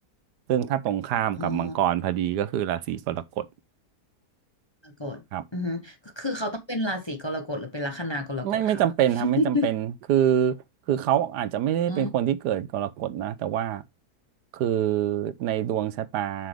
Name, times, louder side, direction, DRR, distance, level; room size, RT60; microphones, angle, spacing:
voice 1, 0.5-3.4 5.3-5.4 8.4-10.5 10.9-13.8 14.5-16.5, right 10 dB, 80° right, 1.3 m, -25 dB
voice 2, 1.4-1.7 4.8-5.2 5.5-8.8 9.2-9.7 11.9-12.1, left 2 dB, 20° left, 0.8 m, -30 dB
7.5 x 6.1 x 3.3 m
omnidirectional pair, 1.8 m